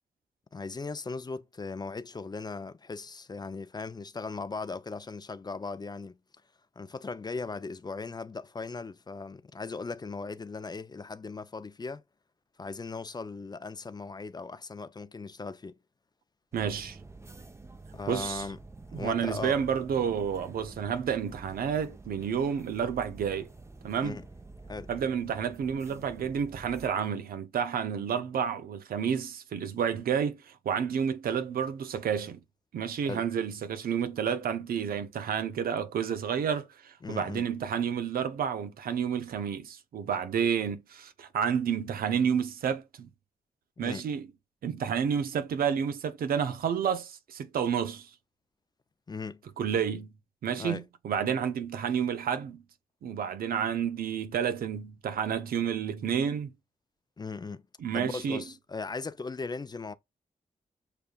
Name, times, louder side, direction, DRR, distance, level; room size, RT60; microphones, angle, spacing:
voice 1, 0.5-6.2 6.8-12.0 12.6-15.8 17.9-18.6 18.9-19.6 24.0-24.3 24.7-24.9 33.1-33.3 37.0-37.5 43.8-44.0 49.1-49.4 50.6-50.8 57.2-57.6 57.9-59.9, left 4 dB, 30° left, 0.4 m, -38 dB
sound 1, 16.5-26.9, right 3 dB, 20° right, 0.6 m, -48 dB
voice 2, 16.5-17.0 18.1-18.4 18.9-23.5 23.8-24.2 24.9-32.4 32.7-43.1 43.8-44.2 44.6-48.1 49.6-50.1 50.4-52.6 53.0-56.5 57.8-58.4, right 7 dB, 80° right, 0.6 m, -30 dB
6.7 x 2.4 x 2.3 m
cardioid pair, 55°, 15 cm